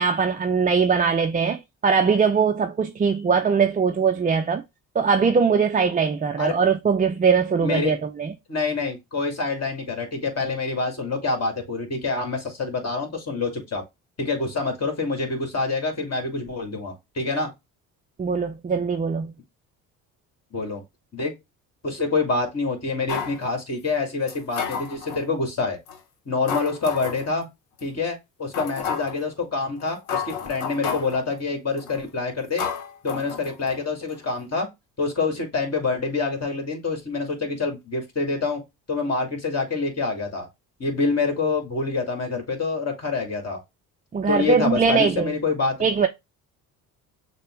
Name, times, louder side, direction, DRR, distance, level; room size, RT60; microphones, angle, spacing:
voice 1, 0.0-4.6 4.9-8.3 18.2-19.3 44.1-45.3 45.8-46.1, right 5 dB, 20° right, 0.4 m, -21 dB
voice 2, 7.6-8.0 8.5-13.8 14.2-17.5 20.5-20.8 21.1-21.3 21.8-25.8 26.3-27.5 27.8-32.6 33.0-34.7 35.0-38.6 38.9-40.5 40.8-43.6 44.3-45.8, left 3 dB, 35° left, 2.1 m, -26 dB
sound 1, 23.1-23.4 24.3-25.2 25.9-26.0 26.5-27.3 27.8-27.9 28.5-29.2 29.8-29.9 30.1-31.2 31.8-32.0 32.6-33.8 34.1-34.2, left 7 dB, 75° left, 0.9 m, -31 dB
6.5 x 2.2 x 3.1 m
hypercardioid pair, 55°, 44 cm